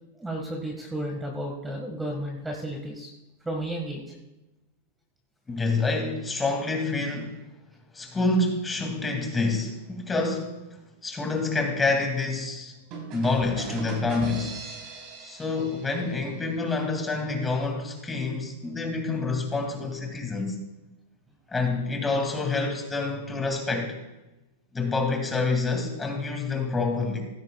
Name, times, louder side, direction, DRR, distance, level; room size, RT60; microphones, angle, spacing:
voice 1, 0.2-3.1 3.5-4.2, right 1 dB, 10° right, 0 dB, 1.7 m, -33 dB
voice 2, 5.5-7.4 7.9-10.5 11.0-12.7 13.1-14.5 15.2-20.5 21.5-23.9 24.7-27.2, left 3 dB, 15° left, 2 dB, 2.4 m, -27 dB
sound 1, 12.9-16.6, right 3 dB, 50° right, 3.6 m, -38 dB
16.0 x 12.5 x 2.4 m, 1.0 s
hypercardioid pair, 120°, 0 cm